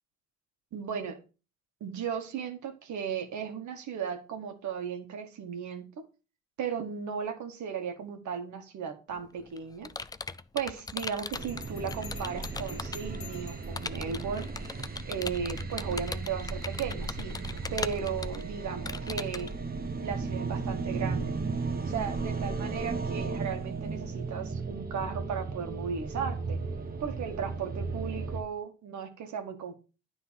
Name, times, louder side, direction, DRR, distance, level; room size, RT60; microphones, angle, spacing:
voice 1, 0.7-1.2 1.8-5.9 6.6-9.9 10.5-14.7 15.0-17.4 17.7-19.5 20.0-21.3 21.9-26.6 27.0-29.7, right 7 dB, 70° right, 5 dB, 1.6 m, -36 dB
Computer keyboard, 9.1-13.2 13.8-19.5, left 4 dB, 15° left, 0.3 m, -39 dB
Bell, 10.9-13.8, left 7 dB, 45° left, 1.6 m, -49 dB
sound 1, 11.3-28.4, right 4 dB, 30° right, 1.0 m, -35 dB
9.5 x 3.9 x 5.6 m, 0.33 s
cardioid pair, 90°, 30 cm